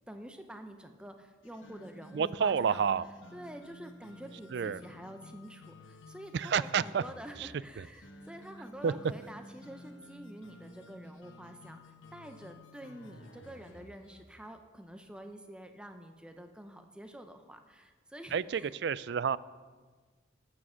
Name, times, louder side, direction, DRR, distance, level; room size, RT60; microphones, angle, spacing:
voice 1, 0.0-2.9 3.3-18.8, right 1 dB, 5° right, 6 dB, 0.6 m, -48 dB
sound 1, 1.4-14.3, left 1 dB, 80° left, 1.3 m, -52 dB
voice 2, 2.1-3.0 4.5-4.8 6.3-7.0 7.4-7.5 8.8-8.9 18.3-19.4, right 6 dB, 60° right, 19 dB, 0.3 m, -29 dB
14.0 x 7.4 x 6.3 m, 1.4 s
head